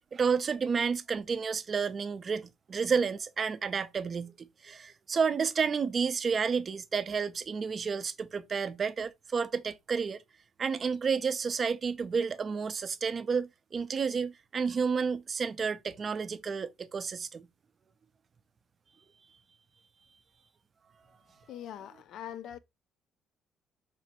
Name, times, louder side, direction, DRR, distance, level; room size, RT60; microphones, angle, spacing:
voice 1, 0.1-10.2 10.6-17.5, right 5 dB, 30° right, 0.3 m, -31 dB
voice 2, 21.5-22.6, left 10 dB, 65° left, 0.3 m, -42 dB
4.9 x 2.2 x 2.7 m
cardioid pair, 135°, 0 cm